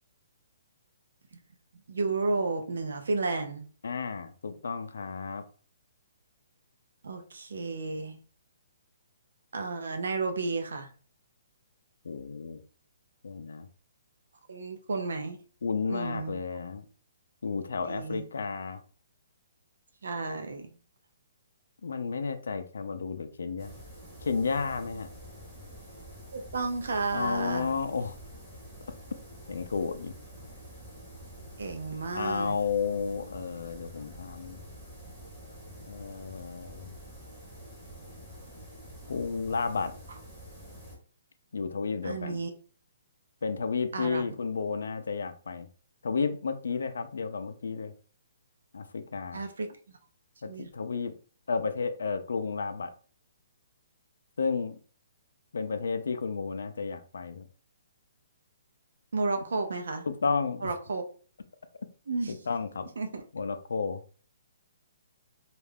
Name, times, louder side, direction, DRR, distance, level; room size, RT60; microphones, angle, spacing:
voice 1, 1.9-3.6 7.0-8.2 9.5-10.9 14.5-15.4 15.9-16.4 17.9-18.3 20.0-20.7 26.3-27.7 31.6-32.6 42.0-42.5 43.9-44.2 49.3-49.7 50.4-50.7 59.1-60.1 60.6-61.0 62.1-62.4 63.0-63.2, right 3 dB, 80° right, 5 dB, 0.5 m, -32 dB
voice 2, 3.8-5.4 12.0-12.6 13.2-13.7 15.6-16.8 17.4-18.8 21.8-23.7 24.2-25.1 27.1-28.2 29.5-30.1 32.1-34.6 35.9-36.9 39.1-39.9 41.5-42.4 43.4-45.7 46.0-47.9 48.7-49.4 50.4-51.1 51.5-52.9 54.4-54.8 55.5-57.5 60.1-60.7 62.3-62.9 63.3-64.0, left 5 dB, 80° left, 9 dB, 0.4 m, -32 dB
sound 1, 23.6-41.0, equal, 5° right, 0.7 m, -47 dB
2.4 x 2.2 x 3.3 m, 0.42 s
hypercardioid pair, 180°, 0 cm